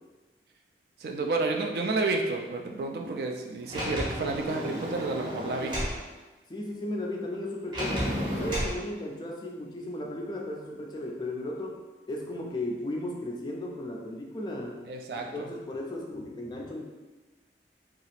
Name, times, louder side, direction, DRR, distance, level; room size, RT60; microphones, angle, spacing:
voice 1, 1.0-5.7 14.9-15.5, right 3 dB, 60° right, 2 dB, 0.3 m, -30 dB
Sliding door, 3.7-6.0 7.7-8.8, equal, 25° right, 0.7 m, -32 dB
voice 2, 6.5-14.8 15.3-16.8, left 1 dB, 25° left, 0 dB, 0.3 m, -35 dB
2.8 x 2.4 x 3.1 m, 1.2 s
head